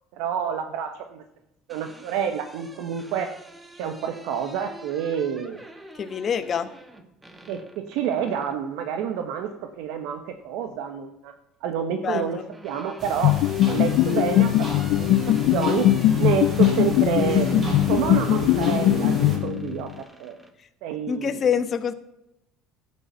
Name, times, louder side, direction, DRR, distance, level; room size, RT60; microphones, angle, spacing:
voice 1, 0.1-1.2 1.7-3.3 3.7-5.6 7.5-11.3 11.6-13.4 13.7-14.7 14.9-15.9 16.2-17.5 17.9-20.4 20.8-21.3, right 8 dB, 75° right, 7 dB, 1.1 m, -28 dB
sound 1, 1.4-8.6 10.1-10.8 12.0-20.5, right 1 dB, 10° right, 1.2 m, -47 dB
voice 2, 5.9-6.7 12.0-12.5 21.1-21.9, left 7 dB, 35° left, 10 dB, 1.1 m, -26 dB
sound 2, 13.0-19.4, right 1 dB, 30° right, 4.1 m, -33 dB
sound 3, 13.2-19.9, left 14 dB, 65° left, 0.4 m, -20 dB
12.5 x 8.9 x 5.6 m, 0.87 s
cardioid pair, 135°, 0 cm